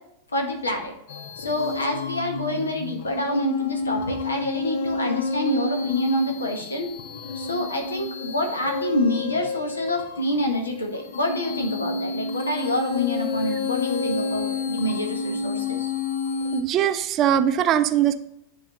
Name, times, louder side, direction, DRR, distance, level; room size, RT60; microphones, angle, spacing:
voice 1, 0.3-0.9 1.4-6.9 7.3-15.9, left 1 dB, 75° left, 3 dB, 1.4 m, -27 dB
sound 1, 1.1-16.6, left 4 dB, 55° left, 0.7 m, -30 dB
voice 2, 16.5-18.1, right 10 dB, 35° right, 10 dB, 0.5 m, -21 dB
10.5 x 3.9 x 3.7 m, 0.79 s
figure-of-eight pair, 90°, 0 cm